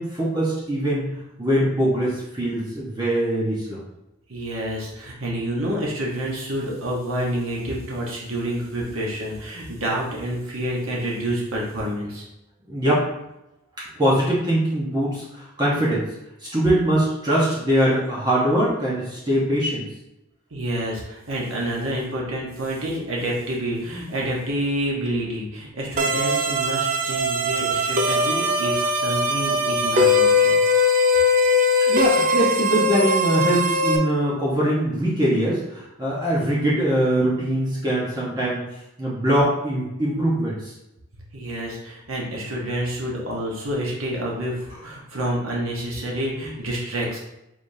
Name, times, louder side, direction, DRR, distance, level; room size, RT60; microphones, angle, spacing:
voice 1, 0.0-3.8 12.7-13.1 14.0-16.0 16.4-19.9 31.9-38.6 39.0-40.7, right 1 dB, 20° right, -7 dB, 0.9 m, -22 dB
voice 2, 4.3-12.3 20.5-30.6 30.9-31.2 31.9-32.0 41.3-47.2, right 1 dB, 90° right, -3 dB, 1.1 m, -28 dB
sound 1, 26.0-34.0, left 2 dB, 40° right, 0.4 m, -20 dB
5.0 x 3.5 x 2.7 m, 0.89 s
head